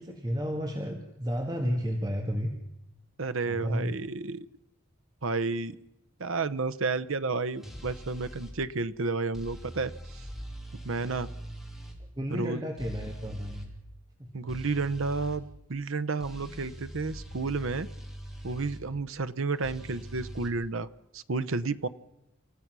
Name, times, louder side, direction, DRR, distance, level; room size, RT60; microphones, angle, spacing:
voice 1, 0.0-2.5 3.5-3.9 12.0-13.7 14.2-14.3, equal, 20° right, 3 dB, 1.7 m, -32 dB
voice 2, 3.2-4.5 5.2-5.8 6.2-10.2 10.7-11.3 12.4-12.6 14.3-15.4 15.7-17.9 18.4-21.9, right 3 dB, 70° right, 13 dB, 0.9 m, -31 dB
sound 1, 7.6-8.5 9.3-12.0 12.8-13.7 14.5-15.4 16.2-18.8 19.6-20.5, right 1 dB, ahead, 3.1 m, -42 dB
28.5 x 15.0 x 6.2 m, 0.89 s
head